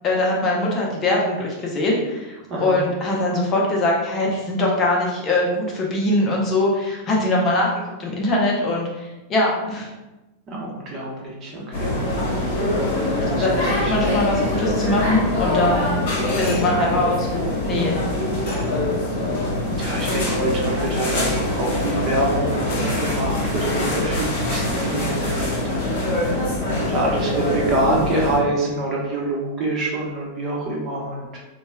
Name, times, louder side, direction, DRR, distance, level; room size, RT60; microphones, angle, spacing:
voice 1, 0.0-9.9 13.2-16.0 16.3-18.0, left 2 dB, 30° left, -2 dB, 0.6 m, -22 dB
voice 2, 10.5-12.0 13.3-13.9 16.6-17.0 19.8-26.6 26.9-31.4, right 1 dB, 30° right, -3 dB, 0.9 m, -26 dB
sound 1, 11.7-28.4, left 1 dB, 45° left, 1.1 m, -23 dB
4.0 x 2.2 x 2.2 m, 1.1 s
figure-of-eight pair, 90°, 0 cm